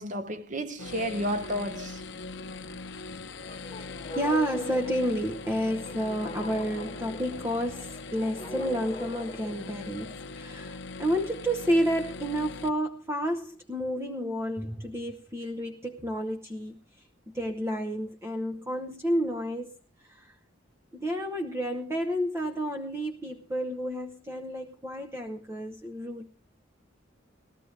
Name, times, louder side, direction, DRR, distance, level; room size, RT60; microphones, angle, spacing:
voice 1, 0.0-2.0, equal, 40° right, 1.1 m, -32 dB
sound 1, 0.8-12.7, left 3 dB, 70° left, 0.9 m, -41 dB
sound 2, 3.4-10.2, left 2 dB, 25° left, 1.0 m, -42 dB
voice 2, 3.8-20.4 20.9-26.3, equal, 15° right, 0.9 m, -31 dB
19.0 x 14.5 x 3.3 m
head